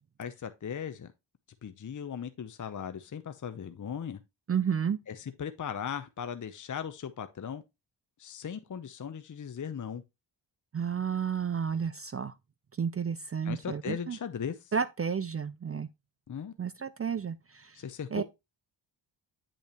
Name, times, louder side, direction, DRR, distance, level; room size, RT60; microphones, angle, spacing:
voice 1, 0.2-1.1 1.6-4.2 5.1-7.6 8.2-10.0 13.4-14.7 16.3-16.5 17.7-18.2, left 7 dB, 40° left, 0.7 m, -38 dB
voice 2, 4.5-5.0 10.7-12.3 12.8-14.2 14.7-15.9 16.6-17.8 18.1-18.2, right 7 dB, 30° right, 0.4 m, -31 dB
8.7 x 5.3 x 3.0 m
cardioid pair, 60°, 46 cm